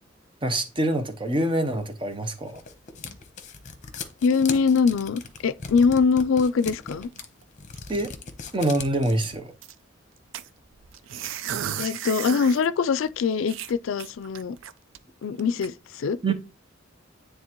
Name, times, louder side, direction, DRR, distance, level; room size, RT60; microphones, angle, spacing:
voice 1, 0.4-2.6 7.9-8.1 8.5-9.5 16.2-16.3, right 1 dB, 25° right, 0.8 m, -25 dB
sound 1, 2.1-9.3, left 5 dB, 40° left, 0.8 m, -38 dB
voice 2, 4.2-7.1 11.8-14.6 15.2-16.2, left 5 dB, 80° left, 0.4 m, -23 dB
sound 2, 5.2-6.6 6.9-7.4 7.8-7.9 8.1-8.2 8.6-9.7 10.3-12.7 13.0-13.1 13.5-15.0 15.4-15.7, right 9 dB, 75° right, 0.4 m, -35 dB
9.6 x 3.3 x 3.0 m
head